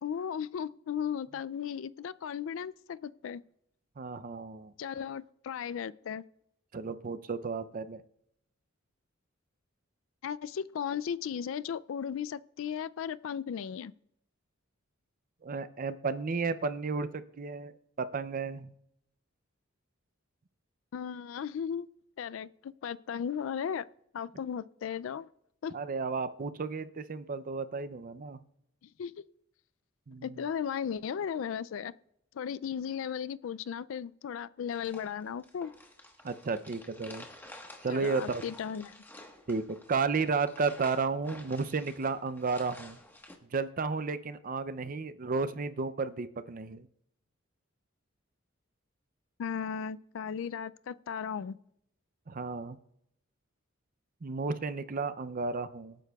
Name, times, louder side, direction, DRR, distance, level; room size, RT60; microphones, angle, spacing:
voice 1, 0.0-3.4 4.8-6.2 10.2-13.9 20.9-21.9 22.2-23.8 24.1-25.3 25.6-25.7 28.8-29.2 30.2-31.9 32.3-35.7 37.9-39.0 49.4-51.6, left 7 dB, 70° left, 0.3 m, -36 dB
voice 2, 4.0-4.7 6.7-8.0 15.4-17.7 18.0-18.7 25.7-28.4 30.1-30.4 36.2-37.3 37.8-38.4 39.5-43.0 43.5-46.9 52.3-52.8 54.2-56.0, right 4 dB, 45° right, 0.5 m, -33 dB
sound 1, 34.7-43.4, left 1 dB, 10° left, 1.3 m, -51 dB
25.0 x 9.2 x 2.3 m
head